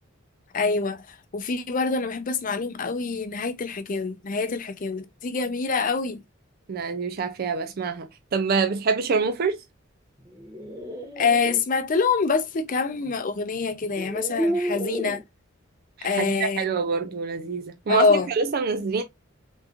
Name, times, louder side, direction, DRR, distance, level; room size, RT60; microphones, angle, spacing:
voice 1, 0.5-1.0 1.3-6.2 11.2-15.2 16.0-16.7 17.9-18.3, left 4 dB, 40° left, 0.5 m, -25 dB
voice 2, 6.7-9.6 16.0-19.0, right 5 dB, 50° right, 0.4 m, -26 dB
sound 1, 10.3-11.6 13.1-13.2 13.8-15.2, equal, 20° right, 0.8 m, -30 dB
3.6 x 2.9 x 2.4 m
head